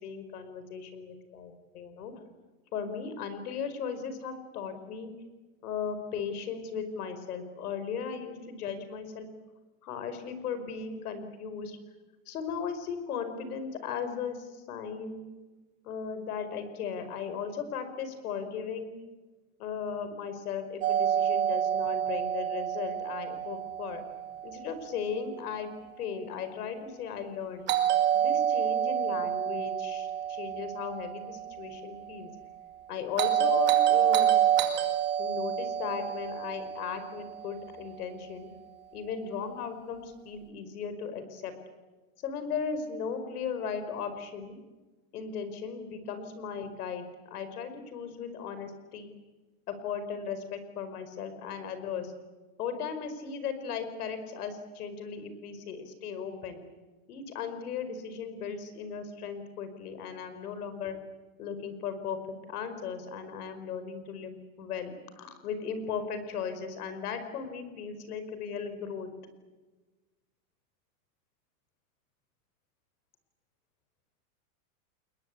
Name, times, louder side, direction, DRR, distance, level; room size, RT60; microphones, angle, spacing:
voice 1, 0.0-2.1 2.7-5.1 5.6-9.3 9.8-11.8 12.3-15.2 15.8-19.0 19.6-24.0 24.4-25.7 26.0-27.7 28.1-32.3 32.9-34.4 35.2-38.5 38.9-41.5 42.2-44.6 45.1-49.1 49.7-52.1 52.6-56.6 57.1-61.0 61.4-62.2 62.5-69.1, left 6 dB, 90° left, 10 dB, 5.2 m, -37 dB
Doorbell, 20.8-24.8 27.7-31.9 33.2-37.6, right 10 dB, 25° right, 2.3 m, -28 dB
29.0 x 21.5 x 8.5 m, 1.2 s
supercardioid pair, 175°, 44 cm